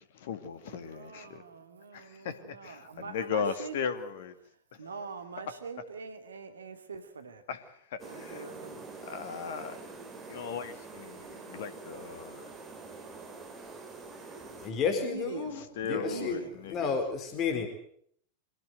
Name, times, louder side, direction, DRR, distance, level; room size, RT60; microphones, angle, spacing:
voice 1, 0.0-1.4 1.9-4.4 4.8-5.1 7.5-8.5 9.0-9.9 10.3-12.5 15.4-16.9, left 6 dB, 55° left, 11 dB, 2.1 m, -38 dB
voice 2, 0.7-3.7 4.8-7.4 8.0-8.8 14.9-16.5, right 5 dB, 70° right, 8 dB, 2.4 m, -43 dB
sound 1, 8.0-14.7, right 3 dB, 20° right, 5.2 m, -46 dB
voice 3, 14.6-16.3 16.7-17.7, left 6 dB, 35° left, 6 dB, 4.4 m, -31 dB
24.5 x 17.5 x 7.9 m, 0.65 s
figure-of-eight pair, 90°, 0 cm